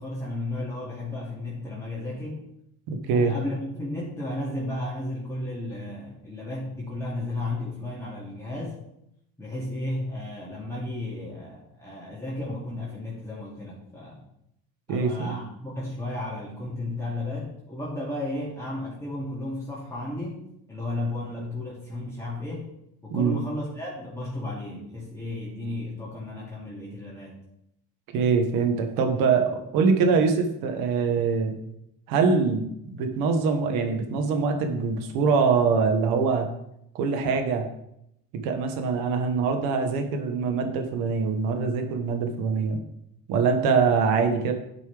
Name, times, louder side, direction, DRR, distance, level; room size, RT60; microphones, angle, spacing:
voice 1, 0.0-2.4 3.1-8.8 9.4-14.2 14.9-22.7 23.0-27.4, left 1 dB, 10° left, -7 dB, 2.4 m, -33 dB
voice 2, 2.9-3.3 14.9-15.4 23.1-23.4 28.1-31.5 32.1-36.5 36.9-37.7 38.3-42.8 43.3-44.5, right 5 dB, 85° right, 6 dB, 1.3 m, -23 dB
10.0 x 5.3 x 3.4 m, 0.78 s
cardioid pair, 90°, 34 cm